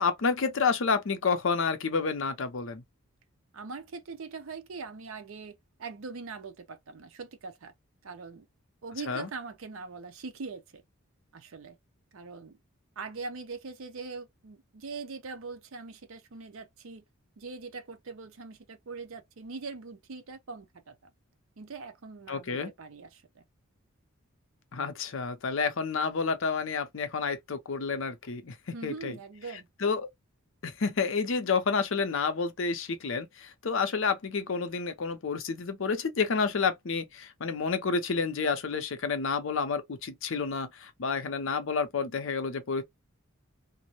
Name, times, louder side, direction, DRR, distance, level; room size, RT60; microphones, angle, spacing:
voice 1, 0.0-2.8 9.1-9.3 22.3-22.7 24.7-28.5 28.8-29.2 29.8-30.1 30.6-42.8, left 5 dB, 60° left, 0.5 m, -29 dB
voice 2, 3.5-7.7 8.0-8.5 8.8-10.8 11.3-11.8 12.1-12.6 13.0-17.0 17.4-21.1 21.6-23.4 28.7-29.7, right 4 dB, 65° right, 0.5 m, -42 dB
2.5 x 2.0 x 2.9 m
head